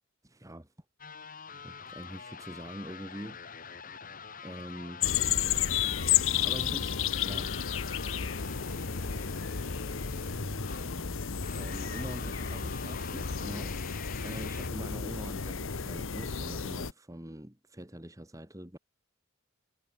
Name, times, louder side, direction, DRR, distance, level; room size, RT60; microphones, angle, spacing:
voice 1, 0.2-0.7 1.6-3.4 4.4-5.0 6.2-6.9 7.2-7.6 11.6-18.8, right 1 dB, 15° right, 1.9 m, -44 dB
sound 1, 1.0-14.7, left 5 dB, 40° left, 3.5 m, -45 dB
sound 2, 5.0-16.9, left 8 dB, 70° left, 1.0 m, -32 dB
voice 2, 6.4-6.9, equal, 25° left, 7.1 m, -53 dB
head